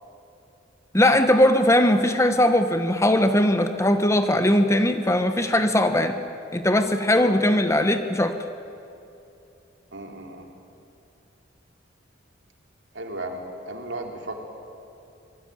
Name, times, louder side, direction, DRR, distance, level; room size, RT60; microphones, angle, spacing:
voice 1, 0.9-6.2 6.5-8.3, left 1 dB, 15° left, 8 dB, 1.0 m, -20 dB
voice 2, 9.9-10.5 12.9-14.4, right 1 dB, 65° right, 2 dB, 3.4 m, -35 dB
25.0 x 20.0 x 9.4 m, 2.7 s
head